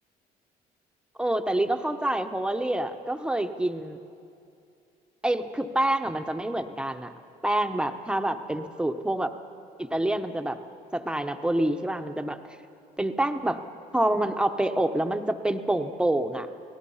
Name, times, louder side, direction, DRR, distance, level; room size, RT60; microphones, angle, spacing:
voice 1, 1.2-4.0 5.2-7.1 7.4-9.3 9.8-10.6 10.9-12.4 13.0-13.6 13.9-16.5, right 1 dB, 5° right, 7 dB, 1.0 m, -27 dB
30.0 x 18.5 x 5.7 m, 2.6 s
cardioid pair, 110°, 17 cm